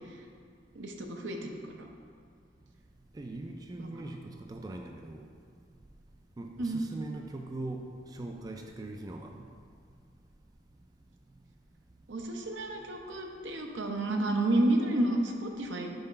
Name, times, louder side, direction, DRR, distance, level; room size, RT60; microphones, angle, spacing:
voice 1, 0.7-1.5 1.8-1.9 3.8-3.9 6.6-6.9 12.1-15.9, right 1 dB, 75° right, 2 dB, 0.8 m, -30 dB
voice 2, 3.1-5.3 6.4-9.4, right 2 dB, 20° right, 3 dB, 0.3 m, -41 dB
5.6 x 4.0 x 5.6 m, 2.2 s
head